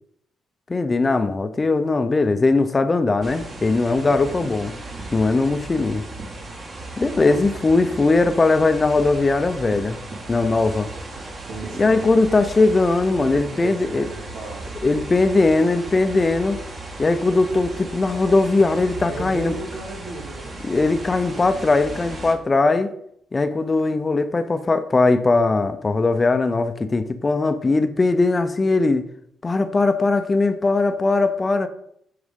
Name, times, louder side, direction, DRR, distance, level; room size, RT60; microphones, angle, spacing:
voice 1, 0.7-4.7 5.1-6.0 7.0-10.0 10.3-10.9 11.8-14.1 14.8-16.6 17.0-19.5 20.6-22.9 23.3-29.0 29.4-31.7, left 3 dB, 25° left, 0.5 m, -19 dB
sound 1, 3.2-22.3, right 2 dB, 40° right, 1.7 m, -36 dB
voice 2, 11.5-12.1 13.3-14.7 19.1-20.7, right 2 dB, 85° right, 2.0 m, -35 dB
9.7 x 4.8 x 3.7 m
cardioid pair, 90°, 0 cm